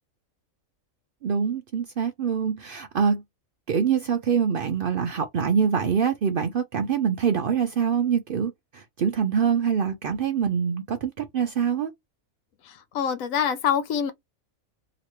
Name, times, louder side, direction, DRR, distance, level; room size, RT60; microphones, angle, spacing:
voice 1, 1.2-3.2 3.7-11.9, right 7 dB, 70° right, 0.5 m, -24 dB
voice 2, 12.7-14.1, left 8 dB, 75° left, 1.1 m, -25 dB
3.0 x 2.9 x 2.9 m
omnidirectional pair, 1.5 m